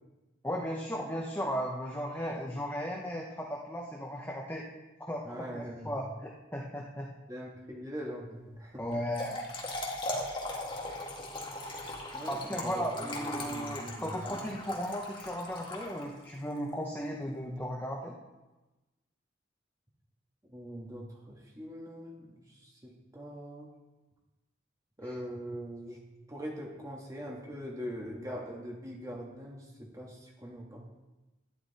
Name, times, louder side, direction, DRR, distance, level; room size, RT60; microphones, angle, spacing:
voice 1, 0.4-4.6 5.1-6.0 6.5-7.1 8.8-9.4 11.8-11.9 12.3-18.1, equal, 10° left, -2 dB, 1.1 m, -36 dB
voice 2, 5.2-5.9 7.3-8.9 12.1-14.5 20.5-23.7 25.0-26.0 26.3-30.8, equal, 20° right, -2 dB, 1.8 m, -42 dB
Trickle dribble / Fill (with liquid), 8.9-16.4, left 1 dB, 25° left, 2.0 m, -39 dB
11.5 x 11.0 x 4.3 m, 1.1 s
head